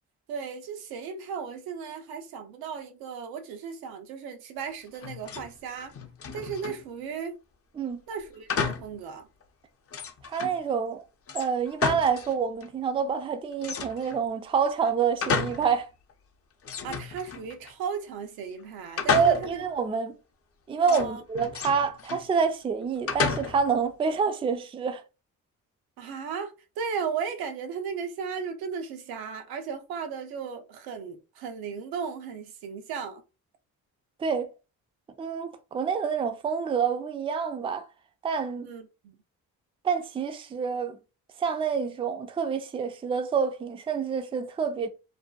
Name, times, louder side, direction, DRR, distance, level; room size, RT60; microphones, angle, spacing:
voice 1, 0.3-5.9 6.3-7.4 8.1-9.3 16.8-19.6 20.9-21.2 26.0-33.2 38.6-39.2, right 6 dB, 85° right, 0.6 m, -36 dB
sound 1, 4.9-5.5 5.8-6.8 8.5-9.0 9.4-9.5 9.9-10.6 11.3-12.3 12.6-12.7 13.6-14.2 14.8-15.8 16.1-16.2 16.6-17.7 19.0-19.7 20.8-22.3 23.1-23.8, left 6 dB, 40° left, 0.6 m, -31 dB
voice 2, 10.2-11.0 11.3-15.9 19.1-20.1 20.7-25.0 34.2-34.5 35.2-37.8 38.2-38.7 39.8-41.0 41.4-44.9, right 6 dB, 15° right, 0.3 m, -27 dB
2.6 x 2.1 x 2.3 m
supercardioid pair, 65°, 36 cm